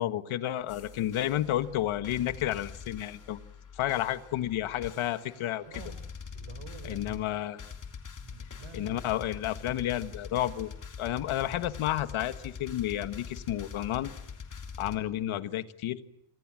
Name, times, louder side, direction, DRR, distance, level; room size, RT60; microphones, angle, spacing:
voice 1, 0.0-3.4 3.8-5.6 6.8-7.6 8.7-10.7 11.0-14.1 14.8-16.0, left 13 dB, 75° left, 11 dB, 1.7 m, -31 dB
sound 1, 0.7-15.0, left 6 dB, 40° left, 3.3 m, -44 dB
voice 2, 5.6-6.0 6.3-7.3 8.2-9.3, right 7 dB, 80° right, 13 dB, 4.7 m, -48 dB
27.5 x 25.5 x 7.6 m, 0.74 s
cardioid pair, 140°, 49 cm